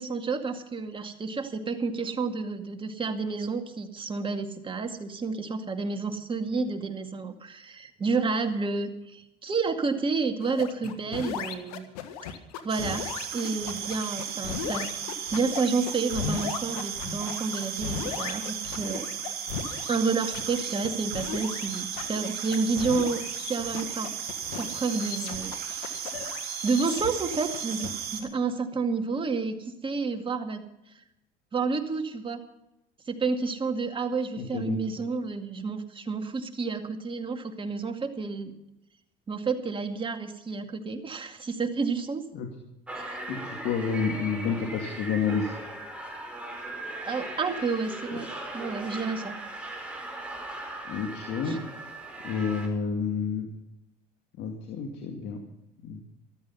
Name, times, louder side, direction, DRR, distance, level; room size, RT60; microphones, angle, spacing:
voice 1, 0.0-11.9 12.6-13.1 13.3-14.9 15.3-19.1 19.9-24.1 24.5-26.1 26.6-30.6 31.5-32.4 33.1-38.5 39.3-42.2 42.9-43.2 47.0-48.3 48.5-49.4 51.5-51.6, right 4 dB, 25° right, 6 dB, 2.1 m, -30 dB
sound 1, 10.4-27.9, left 7 dB, 85° left, 1.5 m, -37 dB
sound 2, 12.7-28.2, right 8 dB, 55° right, 3.9 m, -35 dB
voice 2, 34.4-34.8 42.3-42.5 43.3-45.5 50.9-51.9 52.2-53.5 54.4-55.4 55.8-56.0, left 5 dB, 60° left, 4 dB, 2.3 m, -30 dB
sound 3, 42.9-52.7, right 1 dB, 5° right, 4.5 m, -38 dB
14.0 x 13.0 x 5.6 m, 0.88 s
supercardioid pair, 90°, 19 cm